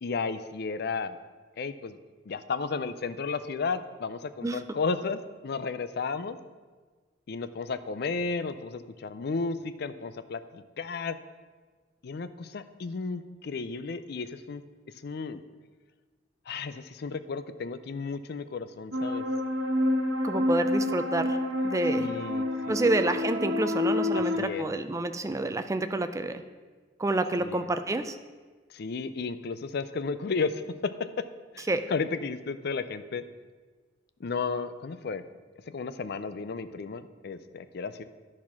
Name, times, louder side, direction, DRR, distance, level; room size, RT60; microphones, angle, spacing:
voice 1, 0.0-1.2 1.6-2.0 2.3-6.4 7.3-11.2 12.0-14.6 15.0-15.4 16.5-19.2 22.0-23.0 24.1-24.7 27.4-27.7 28.7-31.2 31.5-33.2 34.2-35.2 35.7-38.0, left 4 dB, 60° left, 12 dB, 0.4 m, -33 dB
sound 1, 18.9-24.4, left 1 dB, 85° right, 1.1 m, -28 dB
voice 2, 20.2-21.4 21.6-22.1 22.7-26.4 27.0-28.2 31.7-31.8, right 2 dB, 15° right, 9 dB, 0.4 m, -28 dB
11.0 x 4.3 x 5.8 m, 1.4 s
head